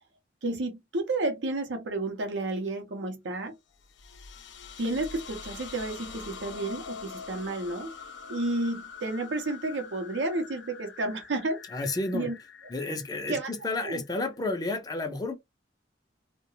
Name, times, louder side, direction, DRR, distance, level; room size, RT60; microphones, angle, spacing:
voice 1, 0.4-3.5 4.8-7.9 8.3-11.6 12.1-12.3 13.3-13.5 13.8-14.0, right 2 dB, 85° right, 0.6 m, -31 dB
sound 1, 3.8-14.4, left 5 dB, 90° left, 0.5 m, -45 dB
voice 2, 11.7-12.3 12.7-15.4, left 2 dB, 20° left, 0.4 m, -31 dB
2.3 x 2.1 x 2.9 m
head